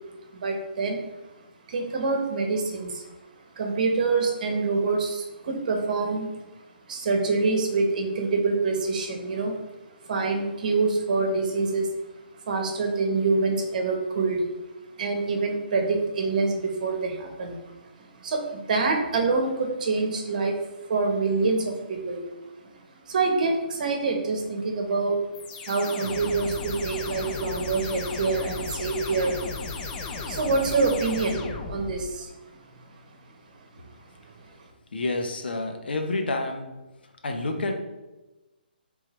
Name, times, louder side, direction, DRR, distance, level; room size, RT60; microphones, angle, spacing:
voice 1, 0.3-1.0 1.7-3.1 3.5-6.3 6.9-9.6 10.0-11.9 12.4-14.4 15.0-20.6 20.9-22.2 23.1-25.2 25.6-29.4 30.0-32.6 34.3-34.5, right 3 dB, 50° right, 3 dB, 0.9 m, -26 dB
sound 1, 25.3-32.2, left 4 dB, 20° left, 0.4 m, -35 dB
voice 2, 34.9-36.7 37.2-37.7, left 2 dB, 75° left, 4 dB, 0.7 m, -29 dB
4.4 x 3.7 x 3.0 m, 1.1 s
hypercardioid pair, 150°, 5 cm